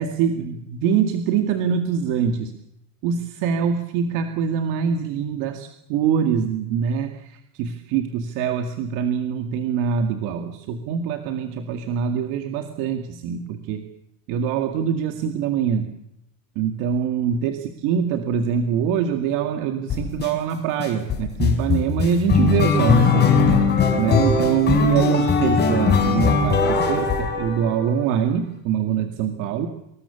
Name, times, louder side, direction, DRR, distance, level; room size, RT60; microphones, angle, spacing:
voice 1, 0.0-2.5 3.0-13.9 14.3-15.9 16.6-23.3 24.0-29.7, right 7 dB, 50° right, 6 dB, 2.3 m, -24 dB
sound 1, 19.9-20.3 20.8-28.0, left 5 dB, 25° left, 5.1 m, -19 dB
26.5 x 21.0 x 7.1 m, 0.80 s
supercardioid pair, 155°, 40 cm